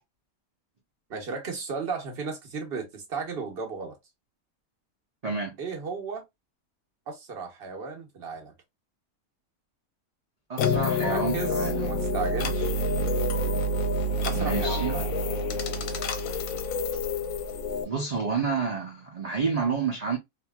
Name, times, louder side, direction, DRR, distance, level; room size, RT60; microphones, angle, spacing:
voice 1, 1.1-4.0 5.6-6.2 7.1-8.5 11.0-12.7 14.3-15.1, right 5 dB, 50° right, 0.9 m, -34 dB
voice 2, 5.2-5.6 10.5-11.9 14.3-15.0 17.8-20.2, right 5 dB, 70° right, 0.3 m, -29 dB
sound 1, 10.6-17.8, left 2 dB, 75° left, 0.9 m, -27 dB
2.8 x 2.5 x 2.2 m
omnidirectional pair, 1.5 m